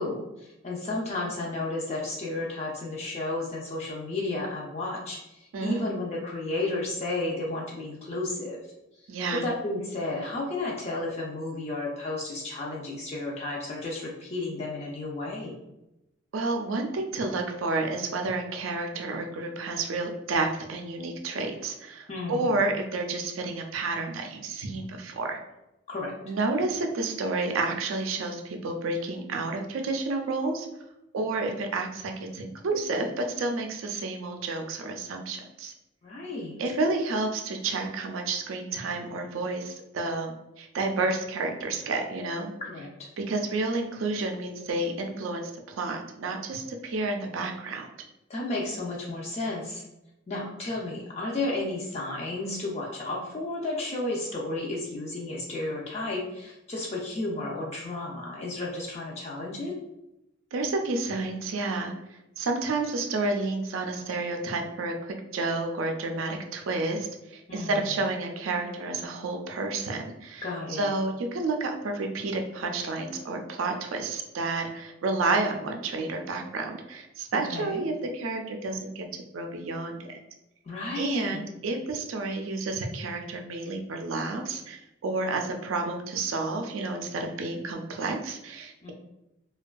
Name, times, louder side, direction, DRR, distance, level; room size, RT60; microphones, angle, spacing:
voice 1, 0.0-8.6 9.3-15.5 22.1-22.6 25.9-26.1 36.0-36.6 42.7-42.9 48.3-49.8 50.3-59.7 67.5-68.0 70.4-70.9 77.3-77.8 80.7-81.4 88.8-88.9, left 2 dB, 35° left, -3 dB, 0.4 m, -32 dB
voice 2, 5.5-5.9 9.1-9.4 16.3-25.4 26.3-30.7 31.1-35.7 36.6-42.5 43.2-47.9 60.5-61.9 62.4-64.9 65.3-79.1 79.3-80.2 80.9-88.9, right 3 dB, 85° right, 4 dB, 0.4 m, -30 dB
2.5 x 2.2 x 2.2 m, 0.92 s
head